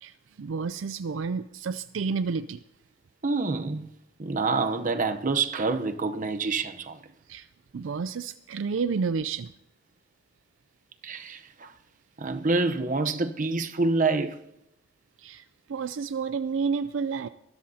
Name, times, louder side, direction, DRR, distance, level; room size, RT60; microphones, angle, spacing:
voice 1, 0.0-2.6 7.3-7.5 7.7-9.5 15.2-17.3, right 5 dB, 70° right, 0.4 m, -30 dB
voice 2, 3.2-3.9 4.2-7.0 11.0-11.7 12.2-14.4, right 3 dB, 40° right, 0.8 m, -27 dB
23.0 x 13.0 x 2.8 m
head